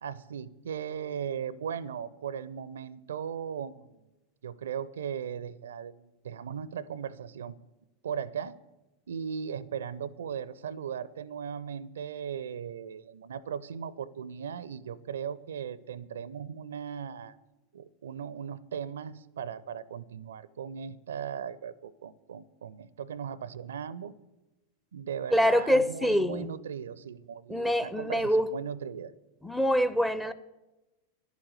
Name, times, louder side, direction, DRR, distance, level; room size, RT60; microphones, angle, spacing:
voice 1, 0.0-4.0 4.4-7.6 8.0-8.6 9.1-17.4 17.7-24.1 24.9-29.1, right 8 dB, 65° right, 20 dB, 0.5 m, -38 dB
voice 2, 25.3-26.5 27.5-28.5 29.4-30.3, equal, 5° left, 13 dB, 0.6 m, -25 dB
11.5 x 8.3 x 9.1 m, 1.0 s
figure-of-eight pair, 90°, 0 cm